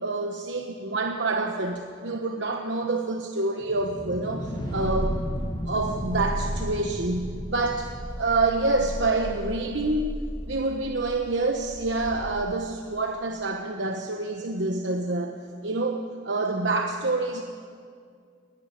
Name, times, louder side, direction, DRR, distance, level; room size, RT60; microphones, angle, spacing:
voice 1, 0.0-5.2 5.7-10.1 10.5-15.3 15.6-17.4, right 2 dB, 60° right, 4 dB, 1.1 m, -27 dB
sound 1, 3.6-8.5, equal, 25° left, 6.4 m, -35 dB
Purr, 4.6-12.7, equal, 25° right, 2.3 m, -35 dB
19.0 x 15.0 x 9.9 m, 2.2 s
head